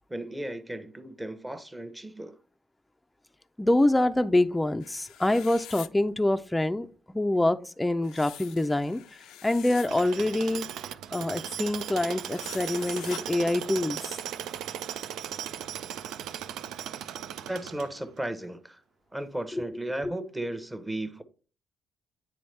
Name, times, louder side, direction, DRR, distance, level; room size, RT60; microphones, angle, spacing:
voice 1, 0.1-2.4 17.5-18.8 19.1-21.2, right 1 dB, 10° right, 0.8 m, -35 dB
voice 2, 3.6-9.0 9.4-10.7 11.1-14.0 19.5-19.6 20.0-20.1, left 1 dB, 10° left, 0.4 m, -25 dB
sound 1, 4.8-5.9 8.0-9.9 12.3-13.2, left 11 dB, 90° left, 0.4 m, -45 dB
Tools, 9.9-18.2, right 10 dB, 85° right, 0.3 m, -37 dB
9.5 x 3.5 x 3.2 m
cardioid pair, 90°, 0 cm